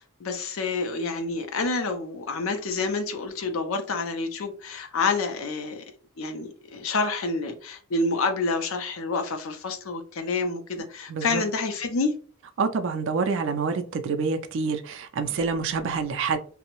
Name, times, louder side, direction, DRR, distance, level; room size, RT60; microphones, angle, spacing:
voice 1, 0.2-5.8 6.2-12.1, left 3 dB, 65° left, 0.5 m, -28 dB
voice 2, 11.1-11.4 12.6-16.4, right 5 dB, 55° right, 0.4 m, -27 dB
2.6 x 2.0 x 2.9 m
head